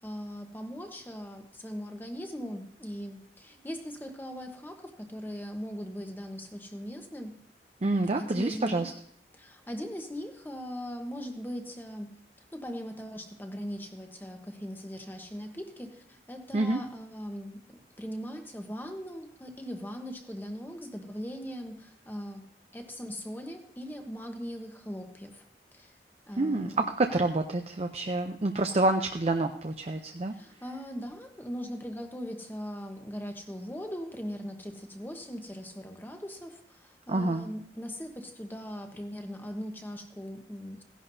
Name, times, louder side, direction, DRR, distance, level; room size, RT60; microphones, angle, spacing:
voice 1, 0.0-7.3 8.1-8.9 9.3-12.1 12.5-22.5 22.7-25.4 25.7-26.0 26.3-26.9 30.3-40.8, equal, 10° left, 4 dB, 1.0 m, -40 dB
voice 2, 7.8-8.9 16.5-16.8 26.4-30.3 37.1-37.5, right 2 dB, 35° right, 6 dB, 0.5 m, -28 dB
16.0 x 11.0 x 2.7 m, 0.66 s
head